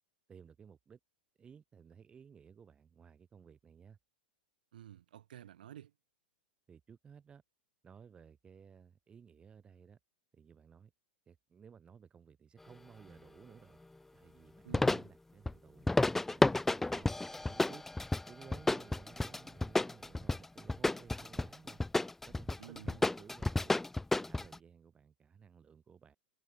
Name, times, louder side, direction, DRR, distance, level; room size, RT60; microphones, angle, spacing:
voice 1, 0.3-1.0 1.4-4.0 6.7-7.4 7.8-10.0 10.3-10.9 11.3-13.8 14.1-17.8 18.3-21.8 22.3-23.8 24.2-26.2, right 7 dB, 20° right, 3.2 m, -57 dB
voice 2, 4.7-5.9 14.6-15.1 22.6-23.0, right 11 dB, 60° right, 5.2 m, -52 dB
sound 1, 14.7-15.1 15.5-15.6 15.9-24.6, left 2 dB, 5° left, 0.5 m, -31 dB
figure-of-eight pair, 95°, 5 cm